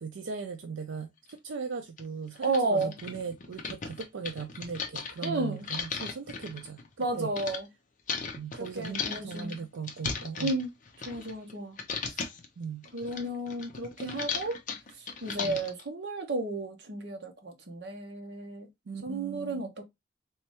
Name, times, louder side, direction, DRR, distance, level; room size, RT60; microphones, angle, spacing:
voice 1, 0.0-6.8 7.2-7.3 8.3-10.5 12.6-12.9 15.3-15.6 18.9-19.7, right 5 dB, 80° right, 0.4 m, -38 dB
sound 1, 1.3-1.4 2.0-2.1 2.4-7.6 8.1-11.5 11.8-12.5 12.8-15.8, left 5 dB, 40° left, 0.6 m, -37 dB
voice 2, 2.4-2.9 5.2-5.7 7.0-7.7 8.6-9.6 10.4-10.7 11.0-11.8 12.9-14.6 15.2-18.7 19.0-19.8, right 2 dB, 60° right, 0.9 m, -32 dB
3.3 x 3.1 x 2.9 m
head